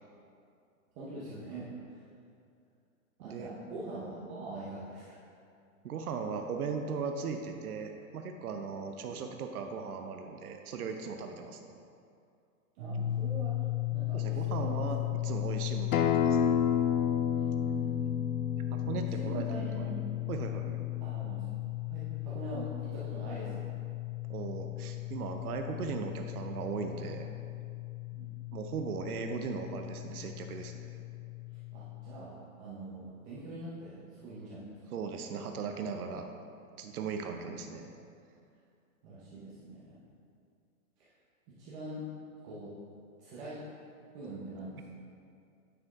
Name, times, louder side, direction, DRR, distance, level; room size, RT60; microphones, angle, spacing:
voice 1, 0.9-2.0 3.2-5.1 9.0-9.2 12.7-13.6 13.9-14.9 17.6-18.1 18.9-20.0 21.0-21.5 21.8-23.7 28.1-28.4 31.7-34.8 37.1-37.4 39.0-40.0 41.0-41.1 41.6-42.0 42.4-42.7 43.2-43.6 44.1-44.9, right 2 dB, 20° right, -9 dB, 0.8 m, -43 dB
voice 2, 3.2-3.6 5.8-11.8 14.1-16.4 18.7-19.5 19.7-19.9 20.3-20.8 24.3-27.3 28.5-30.9 34.9-36.3 36.8-37.9, right 5 dB, 85° right, 5 dB, 0.7 m, -38 dB
sound 1, 12.8-32.1, left 18 dB, 50° right, 1.7 m, -36 dB
Acoustic guitar, 15.9-21.1, left 7 dB, 75° left, 0.6 m, -31 dB
9.4 x 4.4 x 3.6 m, 2.5 s
hypercardioid pair, 155°, 43 cm